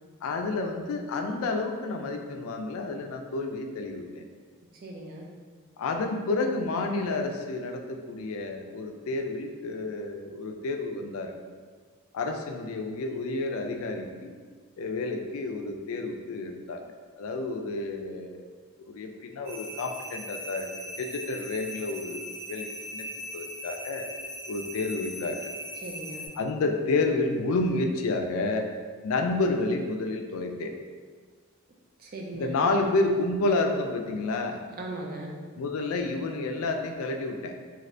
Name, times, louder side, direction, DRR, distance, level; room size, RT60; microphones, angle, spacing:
voice 1, 0.2-4.3 5.8-11.4 12.1-14.3 14.8-16.8 17.2-18.4 18.9-20.7 21.0-23.1 23.3-24.1 24.5-25.4 26.4-28.7 29.0-30.7 32.3-34.6 35.6-37.5, left 3 dB, 75° left, 4 dB, 0.3 m, -30 dB
voice 2, 4.7-5.3 25.8-26.3 32.0-32.6 34.8-35.4, right 1 dB, 40° right, 0 dB, 0.4 m, -38 dB
sound 1, 19.4-26.3, equal, 65° right, 0.8 m, -39 dB
3.2 x 2.7 x 2.5 m, 1.6 s
head